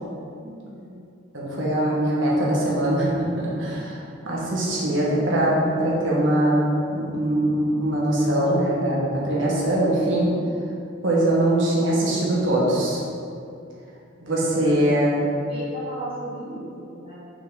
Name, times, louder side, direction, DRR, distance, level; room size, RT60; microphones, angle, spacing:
voice 1, 0.4-0.9 14.8-15.0 15.4-17.2, right 1 dB, 30° right, -9 dB, 1.6 m, -36 dB
voice 2, 1.3-10.3 11.0-13.0 14.2-15.2, right 1 dB, 70° right, -5 dB, 1.5 m, -22 dB
6.1 x 6.0 x 3.9 m, 2.6 s
head